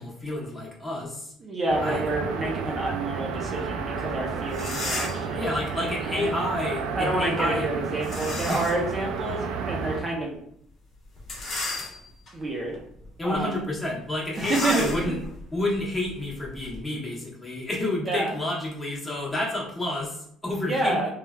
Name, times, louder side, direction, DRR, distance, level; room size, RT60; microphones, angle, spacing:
voice 1, 0.0-1.3 1.8-2.0 5.3-7.7 8.5-8.6 13.2-15.2 15.5-21.1, left 1 dB, 10° left, -4 dB, 0.9 m, -30 dB
voice 2, 1.4-5.4 5.8-6.3 6.9-10.4 12.3-12.8 13.2-13.6 14.4-15.0 18.1-18.3 20.7-21.1, right 2 dB, 25° right, -1 dB, 0.6 m, -28 dB
sound 1, 1.7-10.0, right 5 dB, 85° right, 0.3 m, -31 dB
sound 2, 4.1-4.2 4.5-5.3 8.0-8.9 9.4-9.5 11.2-12.3 12.9-13.1 13.3-13.5 14.3-16.8, left 2 dB, 45° left, 1.0 m, -34 dB
3.0 x 2.3 x 2.2 m, 0.70 s
cardioid pair, 130°, 0 cm